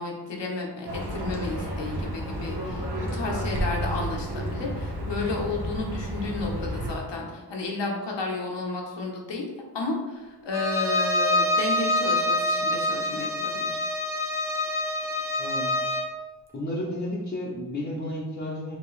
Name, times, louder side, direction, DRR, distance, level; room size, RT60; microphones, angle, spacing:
voice 1, 0.0-9.5 9.7-13.8, left 3 dB, 85° left, -1 dB, 0.9 m, -32 dB
Livestock farm animals working animals, 0.9-6.9, equal, 65° right, 1.0 m, -31 dB
Bowed string instrument, 10.5-16.1, left 1 dB, 5° right, 0.6 m, -26 dB
voice 2, 15.4-16.0 16.5-18.8, left 1 dB, 25° left, -6 dB, 0.8 m, -32 dB
5.1 x 3.0 x 3.2 m, 1.2 s
wide cardioid pair, 110°, 42 cm